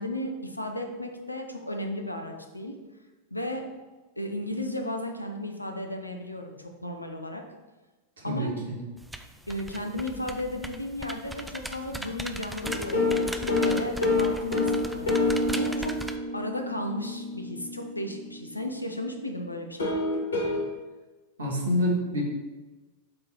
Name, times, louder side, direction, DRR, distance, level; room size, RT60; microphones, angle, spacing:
voice 1, 0.0-2.8 3.3-3.7 4.2-7.4 8.2-8.5 9.5-15.1 15.5-16.0 16.3-20.0, left 1 dB, 85° left, 4 dB, 0.7 m, -34 dB
voice 2, 8.2-8.8 21.4-22.2, equal, 70° right, -1 dB, 1.7 m, -27 dB
sound 1, 9.0-16.2, right 1 dB, 5° right, 0.5 m, -39 dB
sound 2, 12.6-18.5 19.8-20.6, left 2 dB, 65° left, 1.5 m, -27 dB
7.8 x 3.8 x 4.3 m, 1.2 s
figure-of-eight pair, 90°, 0 cm